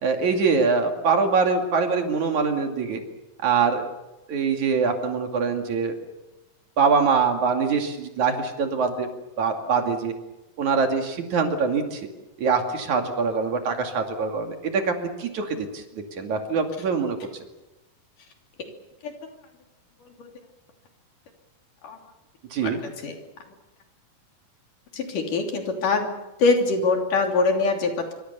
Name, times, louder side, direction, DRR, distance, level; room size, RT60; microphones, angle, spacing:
voice 1, 0.0-3.0 3.4-3.9 4.3-6.0 6.8-9.1 9.4-10.1 10.6-12.1 12.4-14.9 15.2-15.8 16.2-17.2 22.5-22.8, right 5 dB, 65° right, 4 dB, 3.8 m, -23 dB
voice 2, 24.9-26.1 26.4-28.1, left 3 dB, 75° left, 3 dB, 4.6 m, -23 dB
25.5 x 24.5 x 6.9 m, 1.0 s
omnidirectional pair, 3.8 m